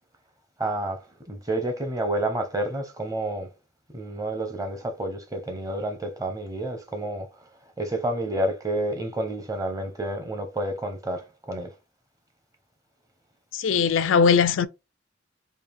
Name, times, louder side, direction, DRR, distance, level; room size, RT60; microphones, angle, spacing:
voice 1, 0.6-3.5 3.9-7.5 7.8-11.7, right 1 dB, 20° right, 0.8 m, -29 dB
voice 2, 13.5-14.7, left 6 dB, 85° left, 0.4 m, -20 dB
3.4 x 2.4 x 3.5 m
head